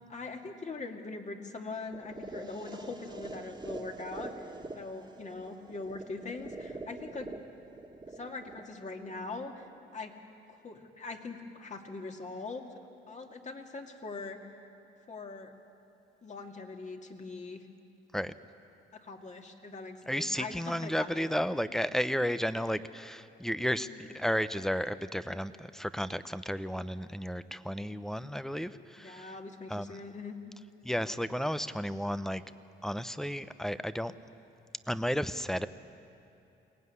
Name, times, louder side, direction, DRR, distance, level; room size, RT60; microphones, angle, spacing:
voice 1, 0.0-7.3 8.1-10.2 10.5-12.6 13.1-14.5 15.1-15.5 16.2-17.7 18.9-21.3 23.9-24.1 27.7-27.8 29.0-30.4, left 3 dB, 35° left, 3 dB, 2.3 m, -42 dB
sound 1, 1.9-9.9, right 2 dB, 20° right, 1.9 m, -45 dB
voice 2, 20.1-29.3 29.7-30.0 30.8-32.4 32.8-34.1 34.9-35.7, equal, ahead, 13 dB, 0.7 m, -33 dB
22.5 x 18.0 x 9.7 m, 2.7 s
cardioid pair, 90°, 20 cm